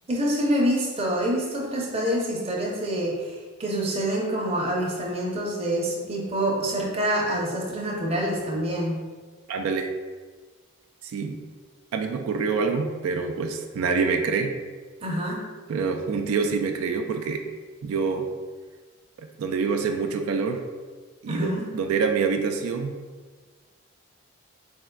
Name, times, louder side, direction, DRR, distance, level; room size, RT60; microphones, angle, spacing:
voice 1, 0.1-9.0 15.0-15.4 21.3-21.7, right 1 dB, 30° right, -2 dB, 0.6 m, -26 dB
voice 2, 9.5-9.9 11.0-11.4 11.9-14.5 15.7-17.4 17.8-18.3 19.2-20.6 21.2-22.9, right 5 dB, 90° right, 4 dB, 0.3 m, -26 dB
4.2 x 3.5 x 2.2 m, 1.4 s
head